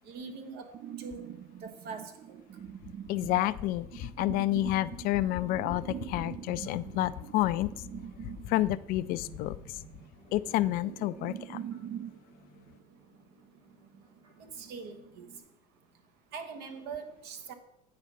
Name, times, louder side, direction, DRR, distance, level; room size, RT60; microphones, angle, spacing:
voice 1, 0.1-1.2 1.6-2.4 14.4-15.3 16.3-17.5, right 5 dB, 55° right, 7 dB, 1.3 m, -42 dB
sound 1, 0.7-12.2, right 10 dB, 35° right, 0.4 m, -44 dB
voice 2, 3.1-7.7 8.4-9.8 10.3-11.6, left 15 dB, 50° left, 14 dB, 0.4 m, -29 dB
sound 2, 5.1-15.4, right 2 dB, 75° right, 2.7 m, -53 dB
8.6 x 4.9 x 5.3 m, 0.83 s
hypercardioid pair, 85°, 19 cm